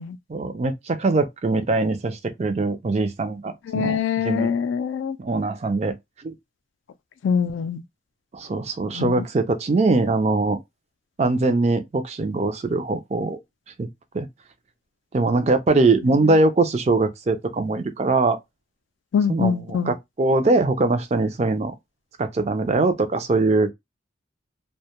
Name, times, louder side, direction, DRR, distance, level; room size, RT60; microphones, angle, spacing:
voice 1, 0.3-4.0 4.2-4.5 5.2-5.9 6.2-6.3 8.3-10.6 11.2-13.4 13.8-13.9 14.1-14.3 15.1-18.4 19.3-21.7 22.2-23.7, right 3 dB, 35° right, 0.4 m, -22 dB
voice 2, 3.7-5.2 7.2-7.8 8.9-9.3 16.0-16.4 19.1-19.9, left 7 dB, 75° left, 0.3 m, -24 dB
2.2 x 2.1 x 2.8 m
head